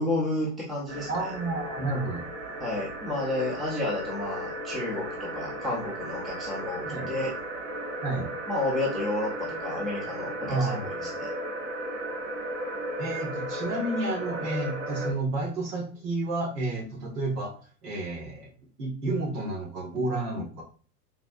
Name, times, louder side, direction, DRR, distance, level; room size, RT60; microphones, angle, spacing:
voice 1, 0.0-1.3 2.6-7.3 8.5-10.8 11.1-11.3, left 2 dB, ahead, -5 dB, 0.5 m, -31 dB
sound 1, 0.9-15.1, right 1 dB, 25° right, 0.9 m, -35 dB
voice 2, 1.1-2.2 6.8-7.1 8.0-8.3 10.4-11.0 13.0-17.5 17.8-18.5 18.8-20.6, right 2 dB, 70° right, 0 dB, 1.8 m, -31 dB
3.9 x 3.5 x 2.6 m, 0.41 s
hypercardioid pair, 125°, 48 cm